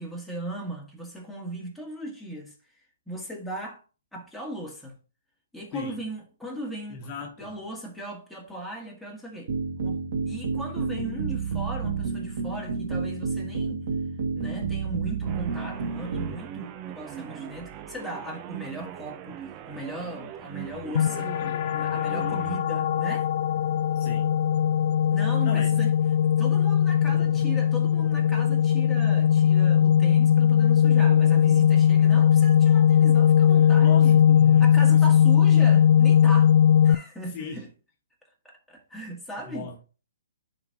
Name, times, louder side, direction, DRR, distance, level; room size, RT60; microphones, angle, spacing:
voice 1, 0.0-3.8 4.1-5.0 5.5-7.1 7.4-9.5 9.8-13.9 14.4-21.4 21.7-23.3 25.1-25.9 26.2-34.2 34.6-36.5 36.8-37.7 38.4-39.7, right 1 dB, ahead, 1.8 m, -38 dB
voice 2, 6.9-7.6 21.4-21.6 23.9-24.3 25.4-25.8 27.1-27.5 33.5-35.3 37.3-37.7 39.4-39.8, left 5 dB, 35° left, 1.3 m, -38 dB
sound 1, 9.5-16.3, right 5 dB, 55° right, 2.0 m, -30 dB
sound 2, 15.2-22.6, right 10 dB, 25° right, 0.6 m, -41 dB
sound 3, 20.9-36.9, left 9 dB, 50° left, 0.3 m, -19 dB
10.5 x 4.2 x 2.9 m
hypercardioid pair, 145°, 0 cm